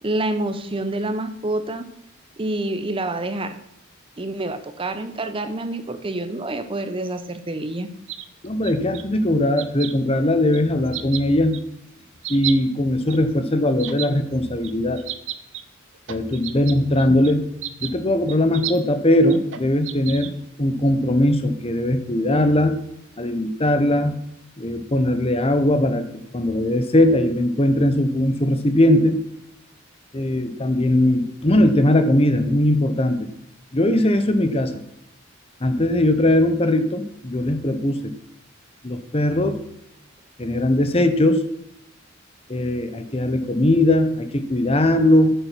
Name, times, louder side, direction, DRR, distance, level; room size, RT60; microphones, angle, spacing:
voice 1, 0.0-1.9 2.4-3.6 4.2-7.9, right 2 dB, 25° right, 10 dB, 0.7 m, -27 dB
sound 1, 8.1-9.0 9.6-9.9 10.5-10.6 10.8-11.2 11.5-11.6 12.2-12.5 13.1-13.2 13.8-14.1 14.6-14.7 15.0-15.6 15.9-17.3 17.6-17.9 18.3-18.8 19.3-20.3, right 12 dB, 65° right, 0.7 m, -31 dB
voice 2, 8.4-11.6 12.3-15.0 16.1-17.4 17.8-20.3 20.6-22.8 23.2-24.2 24.6-26.1 26.3-29.2 30.1-33.3 33.7-34.8 35.6-38.1 38.8-39.6 40.4-41.4 42.5-45.3, left 1 dB, 30° left, 9 dB, 0.9 m, -20 dB
8.9 x 6.9 x 5.8 m, 0.77 s
head